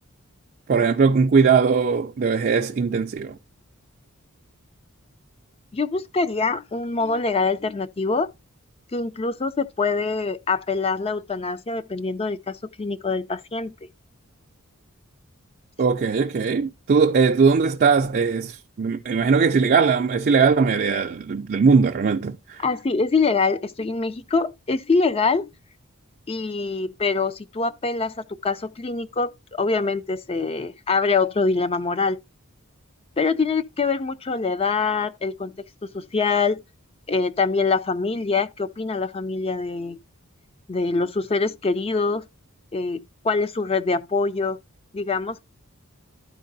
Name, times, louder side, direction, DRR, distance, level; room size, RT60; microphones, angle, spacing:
voice 1, 0.7-3.4 15.8-22.6, right 5 dB, 40° right, 0.4 m, -20 dB
voice 2, 5.7-8.3 8.9-13.9 22.6-25.5 26.3-32.2 33.2-35.5 35.8-36.6 37.1-40.0 40.7-42.3 42.7-44.6 44.9-45.4, left 4 dB, 25° left, 0.4 m, -24 dB
13.0 x 4.6 x 2.6 m
head